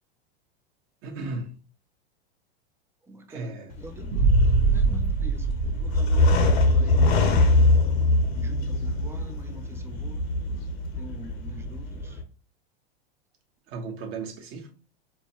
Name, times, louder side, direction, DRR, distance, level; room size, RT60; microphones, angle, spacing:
voice 1, 1.0-1.6 3.3-3.7 13.7-14.7, right 3 dB, 45° right, 1.2 m, -35 dB
voice 2, 3.0-7.7 8.4-10.3 11.0-12.2, right 1 dB, 10° right, 0.4 m, -45 dB
sound 1, 3.7-12.2, left 2 dB, 80° left, 1.0 m, -23 dB
sound 2, 4.1-7.1, right 4 dB, 90° right, 1.0 m, -24 dB
4.6 x 2.2 x 2.9 m
supercardioid pair, 125°, 31 cm